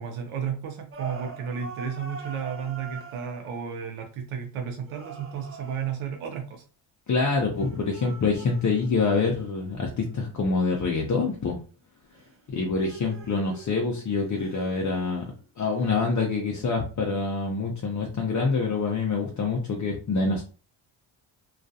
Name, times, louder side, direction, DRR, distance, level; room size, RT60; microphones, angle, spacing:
voice 1, 0.0-6.6, right 7 dB, 80° right, 3 dB, 0.7 m, -33 dB
sound 1, 0.9-3.5 4.9-6.2 7.5-10.7 12.1-15.4 15.8-16.3, right 5 dB, 30° right, 0.5 m, -44 dB
voice 2, 7.1-11.6 12.5-15.3 15.6-20.4, left 4 dB, 40° left, -1 dB, 0.6 m, -26 dB
2.4 x 2.3 x 2.6 m, 0.36 s
cardioid pair, 85°, 48 cm